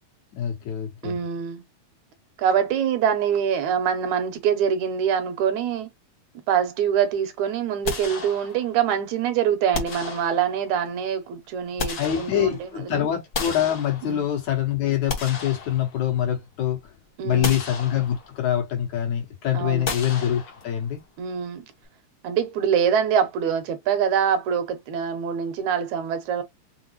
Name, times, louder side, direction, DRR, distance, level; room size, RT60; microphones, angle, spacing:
voice 1, 0.3-1.2 12.0-16.8 17.2-21.0, left 10 dB, 75° left, 2.9 m, -25 dB
voice 2, 1.0-1.6 2.4-5.9 6.5-13.1 14.0-14.2 17.2-17.6 19.5-19.9 21.2-21.6 22.2-26.4, right 8 dB, 80° right, 2.2 m, -24 dB
sound 1, 7.8-8.9 9.7-10.8 11.4-12.8 13.3-14.4 14.9-16.4 16.7-16.9 17.4-18.5 19.8-21.0, left 4 dB, 50° left, 1.1 m, -33 dB
6.2 x 2.1 x 3.0 m
omnidirectional pair, 3.3 m